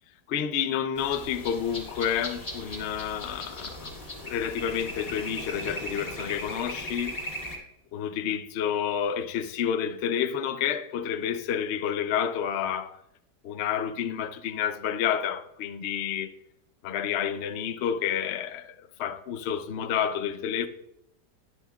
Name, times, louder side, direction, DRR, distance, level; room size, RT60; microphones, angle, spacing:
voice 1, 0.3-4.0 4.2-7.2 7.9-13.0 13.4-16.3 16.8-20.7, left 8 dB, 85° left, 0.5 m, -29 dB
sound 1, 1.0-7.6, left 1 dB, 20° left, 1.6 m, -38 dB
11.0 x 10.0 x 2.3 m
omnidirectional pair, 1.9 m